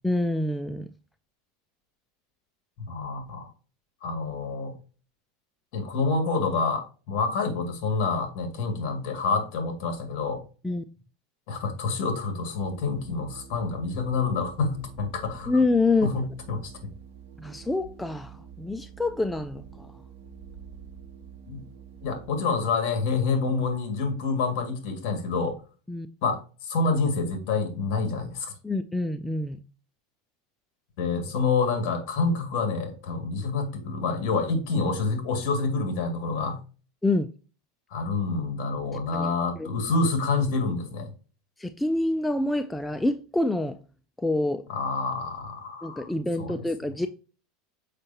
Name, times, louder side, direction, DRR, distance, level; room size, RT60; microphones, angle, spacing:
voice 1, 0.0-0.9 10.6-10.8 15.5-16.1 17.4-19.9 25.9-26.1 28.6-29.6 37.0-37.3 39.1-39.7 41.6-43.8 44.2-44.6 45.8-47.1, left 2 dB, 5° left, 0.3 m, -26 dB
voice 2, 2.9-3.5 4.0-4.8 5.7-10.4 11.5-15.6 16.0-16.7 21.5-21.6 22.0-25.6 26.2-28.5 31.0-36.6 37.9-41.1 44.7-46.1 46.4-46.5, left 4 dB, 50° left, 2.2 m, -27 dB
Organ, 12.3-22.6, right 7 dB, 70° right, 1.0 m, -47 dB
6.6 x 5.4 x 2.9 m
supercardioid pair, 160°, 0 cm